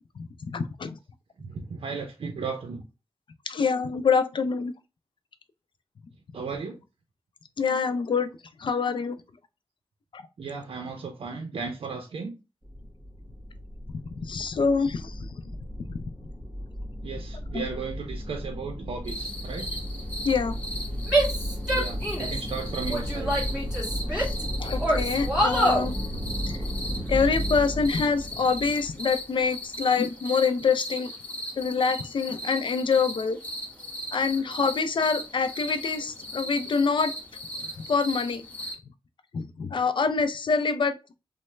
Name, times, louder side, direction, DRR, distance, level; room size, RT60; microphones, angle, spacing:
voice 1, 0.2-1.0 3.5-4.7 7.6-8.3 8.6-9.2 10.1-10.2 14.1-15.3 15.9-16.0 17.5-17.6 20.2-20.6 24.1-24.3 24.6-25.9 26.5-26.7 27.1-31.1 31.6-33.4 34.1-37.1 37.9-38.4 39.3-41.0, left 5 dB, 60° left, 0.4 m, -25 dB
voice 2, 1.4-2.8 6.3-6.8 10.4-12.4 17.0-19.7 21.7-23.4, right 5 dB, 70° right, 0.5 m, -35 dB
sound 1, 12.6-29.6, equal, 25° right, 1.7 m, -34 dB
sound 2, 19.1-38.7, equal, 15° left, 1.0 m, -38 dB
Female speech woman speaking / Yell, 21.1-22.4 22.9-24.4 24.8-25.9, right 1 dB, 5° right, 1.8 m, -25 dB
3.1 x 2.0 x 3.1 m
cardioid pair, 65°, 9 cm